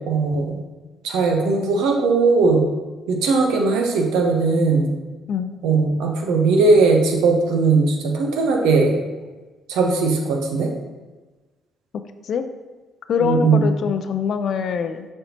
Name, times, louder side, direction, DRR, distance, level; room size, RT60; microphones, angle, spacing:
voice 1, 0.1-0.5 1.0-2.6 3.1-4.9 5.6-9.0 9.7-10.7 13.2-13.7, right 4 dB, 75° right, 2 dB, 0.9 m, -18 dB
voice 2, 13.1-15.1, left 7 dB, 60° left, 9 dB, 0.5 m, -23 dB
6.6 x 5.6 x 2.9 m, 1.2 s
hypercardioid pair, 50°, 0 cm